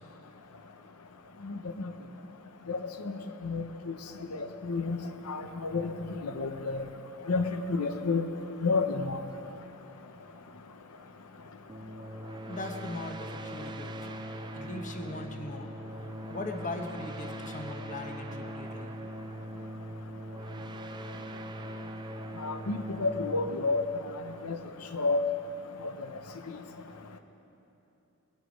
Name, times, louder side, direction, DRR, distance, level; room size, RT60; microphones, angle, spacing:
voice 1, 3.4-3.9 4.3-5.0 5.3-5.9 6.2-6.8 7.3-8.3 8.6-9.2 22.4-23.8 24.4-24.6 24.9-25.2, left 3 dB, 85° left, 7 dB, 0.8 m, -30 dB
sound 1, 11.7-25.0, right 1 dB, 20° right, 0.5 m, -41 dB
voice 2, 12.5-14.2 14.5-15.8 16.3-18.9, left 2 dB, 35° left, 4 dB, 0.9 m, -39 dB
21.5 x 8.1 x 5.2 m, 2.9 s
head